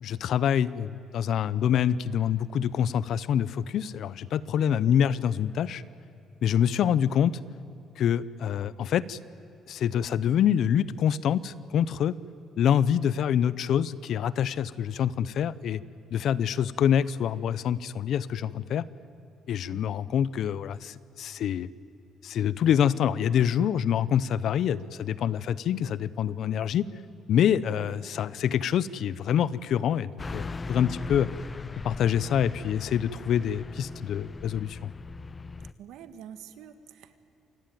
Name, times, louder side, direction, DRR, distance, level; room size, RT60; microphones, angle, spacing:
voice 1, 0.0-5.8 6.4-7.3 8.0-9.2 9.7-12.1 12.6-15.8 16.1-18.8 19.5-21.7 22.2-26.9 27.3-31.3 31.8-34.9, left 9 dB, 55° left, 19 dB, 0.8 m, -26 dB
voice 2, 4.9-5.2 19.7-20.0 27.7-27.9 35.8-37.2, right 9 dB, 80° right, 11 dB, 1.7 m, -47 dB
Car passing by / Truck, 30.2-35.7, left 3 dB, 20° left, 0.6 m, -39 dB
27.5 x 19.5 x 9.3 m, 2.9 s
cardioid pair, 155°, 0 cm